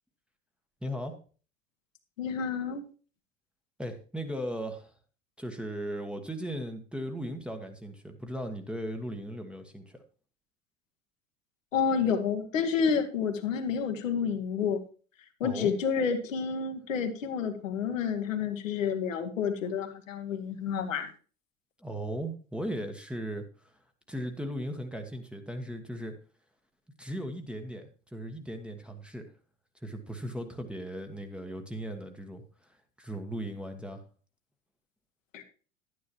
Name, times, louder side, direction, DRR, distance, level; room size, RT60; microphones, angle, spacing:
voice 1, 0.8-1.2 3.8-4.9 5.4-10.0 15.4-15.7 21.8-23.7 24.1-26.1 27.0-29.3 29.8-34.0, equal, 5° right, 3 dB, 1.2 m, -37 dB
voice 2, 2.2-2.8 11.7-14.8 15.4-21.1 35.3-35.4, left 6 dB, 70° left, 5 dB, 1.4 m, -29 dB
11.0 x 9.6 x 2.9 m, 0.38 s
figure-of-eight pair, 75°, 40 cm